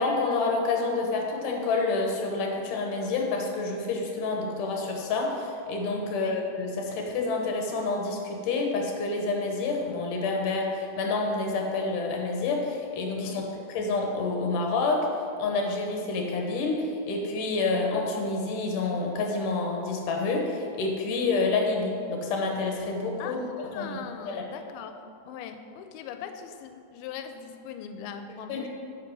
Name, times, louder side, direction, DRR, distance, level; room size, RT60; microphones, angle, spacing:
voice 1, 0.0-13.4 13.7-15.1 15.4-23.4 23.8-24.0 24.3-24.4 28.5-28.7, left 3 dB, 70° left, 1 dB, 2.4 m, -28 dB
voice 2, 23.2-28.7, left 7 dB, 90° left, 7 dB, 2.5 m, -41 dB
9.2 x 5.5 x 6.2 m, 2.5 s
omnidirectional pair, 4.4 m